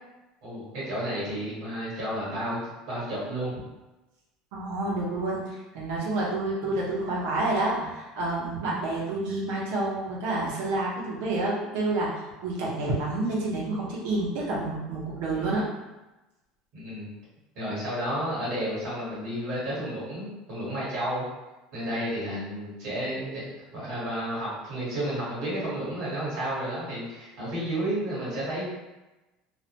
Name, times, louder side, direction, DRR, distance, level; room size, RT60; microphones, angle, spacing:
voice 1, 0.4-2.6 2.9-3.5 6.6-6.8 8.7-8.8 16.7-17.1 17.5-21.2 21.7-23.4 23.7-28.7, right 1 dB, 55° right, -9 dB, 1.3 m, -31 dB
voice 2, 4.5-15.7, right 2 dB, 85° right, -5 dB, 0.8 m, -29 dB
2.4 x 2.1 x 2.9 m, 1.1 s
cardioid pair, 155°, 0 cm